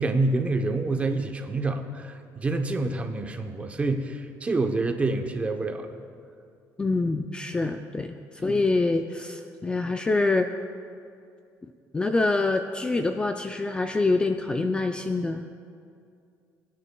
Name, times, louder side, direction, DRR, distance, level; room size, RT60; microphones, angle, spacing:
voice 1, 0.0-6.0 8.5-8.6, right 3 dB, 20° right, 5 dB, 0.7 m, -27 dB
voice 2, 6.8-10.5 11.9-15.5, left 3 dB, 15° left, 6 dB, 0.3 m, -25 dB
20.5 x 9.9 x 2.3 m, 2.4 s
cardioid pair, 145°, 7 cm